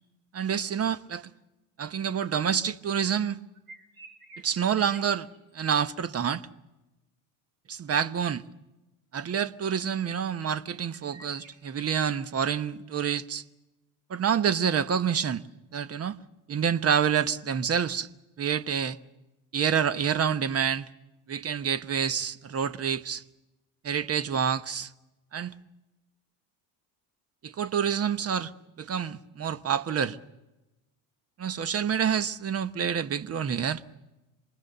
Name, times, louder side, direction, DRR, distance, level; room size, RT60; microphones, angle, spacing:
voice 1, 0.3-1.3 1.8-3.4 4.4-5.3 5.5-6.5 7.7-8.4 9.1-13.4 14.1-15.4 15.7-16.2 16.5-18.1 18.4-19.0 19.5-20.9 21.3-23.2 23.8-24.9 25.3-25.5 27.4-28.5 28.8-30.2 31.4-33.8, right 7 dB, 35° right, 1.0 m, -27 dB
sound 1, 3.5-6.2 10.4-11.5, right 2 dB, 55° right, 6.1 m, -52 dB
27.0 x 20.5 x 6.8 m
supercardioid pair, 100°, 43 cm